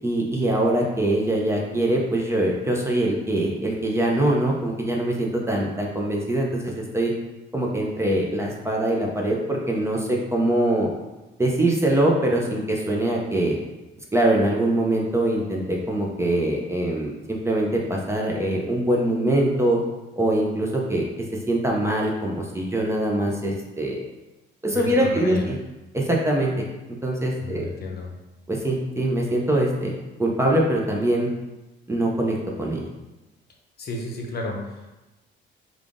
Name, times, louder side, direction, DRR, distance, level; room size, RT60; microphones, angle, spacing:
voice 1, 0.0-7.1 7.5-10.9 11.4-13.6 14.1-19.8 20.2-21.0 21.5-24.0 24.6-25.6 25.9-26.7 27.0-27.7 28.5-29.9 30.2-31.3 31.9-32.8, right 1 dB, 15° right, -2 dB, 0.7 m, -23 dB
voice 2, 24.7-25.5 27.4-28.1 33.8-34.9, left 2 dB, 55° left, 0 dB, 0.7 m, -32 dB
3.5 x 2.4 x 3.6 m, 1.1 s
cardioid pair, 90°, 20 cm